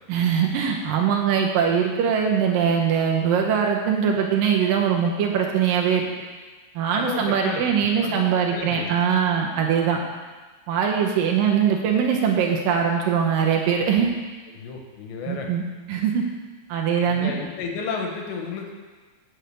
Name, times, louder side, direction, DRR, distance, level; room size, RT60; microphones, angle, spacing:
voice 1, 0.1-6.1 6.8-10.0 10.7-14.1 15.3-15.6 15.9-16.2 16.7-17.3, right 7 dB, 85° right, 0 dB, 2.0 m, -22 dB
voice 2, 7.0-7.7 8.0-8.2 8.5-8.9 14.6-15.5 17.1-18.7, left 5 dB, 85° left, 2 dB, 3.2 m, -32 dB
8.4 x 5.6 x 7.8 m, 1.3 s
omnidirectional pair, 5.1 m